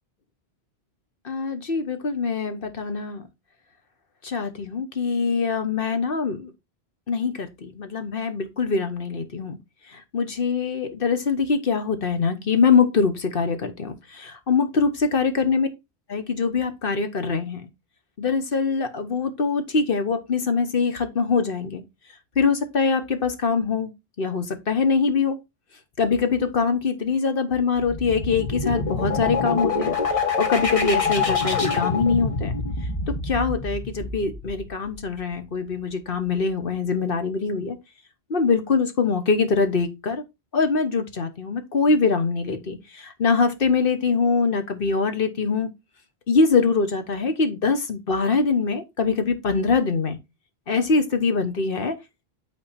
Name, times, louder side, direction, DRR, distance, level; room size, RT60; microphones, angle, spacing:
voice 1, 1.2-3.2 4.2-6.5 7.1-9.6 10.1-15.7 16.1-17.6 18.2-21.8 22.4-23.9 24.2-25.4 26.0-32.5 33.2-37.8 38.3-40.2 40.5-45.7 46.3-50.2 50.7-51.9, left 4 dB, 60° left, 1.3 m, -23 dB
sound 1, 27.8-35.4, left 4 dB, 35° left, 1.3 m, -26 dB
8.8 x 4.0 x 4.2 m
omnidirectional pair, 1.1 m